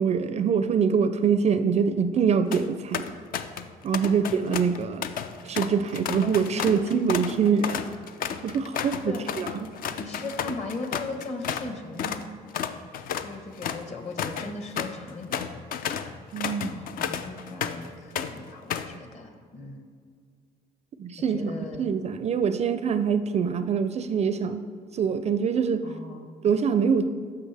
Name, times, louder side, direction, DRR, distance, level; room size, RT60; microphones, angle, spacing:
voice 1, 0.0-3.1 3.8-5.1 5.4-7.9 8.4-9.7 16.3-16.8 21.0-21.5 21.8-24.6 24.9-25.8 26.4-27.1, right 6 dB, 40° right, 10 dB, 0.4 m, -24 dB
sound 1, 2.3-2.6 2.9-3.7 3.9-11.7 12.0-12.2 12.5-17.9 18.2-19.0, left 8 dB, 55° left, 0.5 m, -32 dB
voice 2, 9.1-9.4 10.0-12.3 13.1-15.5 16.6-19.9 21.3-21.9 25.8-26.3, left 3 dB, 40° left, 5 dB, 1.2 m, -38 dB
14.0 x 5.7 x 3.4 m, 2.1 s
cardioid pair, 110°, 17 cm